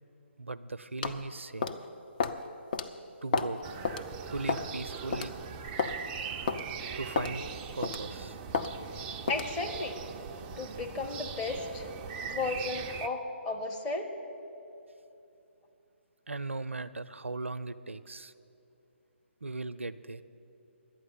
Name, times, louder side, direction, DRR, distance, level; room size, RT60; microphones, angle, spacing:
voice 1, 0.4-1.8 3.2-3.6 4.3-5.3 7.0-7.4 7.7-8.4 16.3-18.3 19.4-20.2, right 3 dB, 75° right, 13 dB, 0.5 m, -38 dB
sound 1, 1.0-1.2 1.6-1.8 2.2-2.4 2.7-2.9 3.3-3.6 3.8-4.0 4.5-4.7 5.1-5.3 5.8-6.0 6.5-6.6 7.2-7.3 7.8-8.1 8.5-8.7 9.3-9.5, left 5 dB, 45° left, 0.6 m, -30 dB
sound 2, 3.6-13.1, right 6 dB, 15° right, 0.4 m, -41 dB
voice 2, 9.3-10.0 10.6-11.9 12.2-14.1, left 3 dB, 15° left, 1 dB, 0.9 m, -34 dB
11.5 x 9.1 x 8.2 m, 2.8 s
figure-of-eight pair, 140°, 7 cm